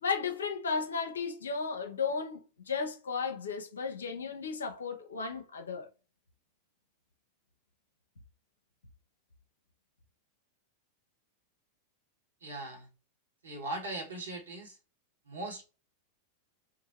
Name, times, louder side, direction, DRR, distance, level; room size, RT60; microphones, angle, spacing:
voice 1, 0.0-5.9, left 5 dB, 70° left, 0.6 m, -34 dB
voice 2, 12.4-12.9 13.4-14.8 15.2-15.6, right 2 dB, 70° right, 1.5 m, -39 dB
2.9 x 2.6 x 4.0 m
figure-of-eight pair, 90°, 0 cm